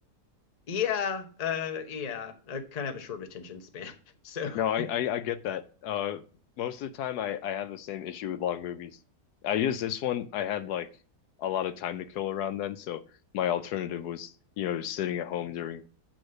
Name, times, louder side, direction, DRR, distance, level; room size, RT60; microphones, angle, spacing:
voice 1, 0.7-3.9 4.2-4.6, left 7 dB, 35° left, 0.8 m, -33 dB
voice 2, 4.5-6.2 6.6-8.9 9.4-10.9 11.4-13.0 13.3-15.9, left 10 dB, 75° left, 1.1 m, -31 dB
8.0 x 3.9 x 6.4 m
omnidirectional pair, 1.7 m